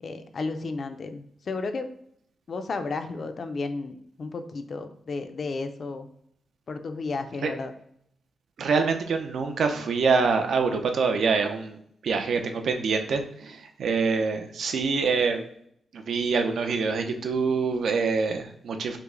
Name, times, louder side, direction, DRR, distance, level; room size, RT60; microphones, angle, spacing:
voice 1, 0.0-1.9 2.5-6.1 6.7-7.7, left 3 dB, 45° left, 8 dB, 0.4 m, -33 dB
voice 2, 8.6-11.8 12.0-15.4 15.9-19.0, right 4 dB, 70° right, 5 dB, 0.6 m, -25 dB
5.6 x 2.1 x 3.7 m, 0.69 s
wide cardioid pair, 165°, 0 cm